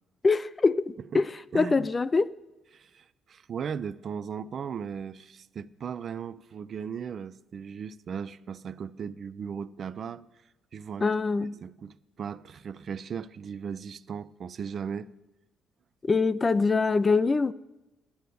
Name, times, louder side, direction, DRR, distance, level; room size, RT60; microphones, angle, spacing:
voice 1, 0.2-1.3 1.5-2.3 11.0-11.5 16.0-17.5, left 4 dB, 25° left, 0.4 m, -24 dB
voice 2, 1.5-1.9 2.7-10.2 10.7-11.1 11.6-15.1, right 7 dB, 50° right, 0.4 m, -37 dB
9.4 x 8.6 x 9.3 m
cardioid pair, 110°, 0 cm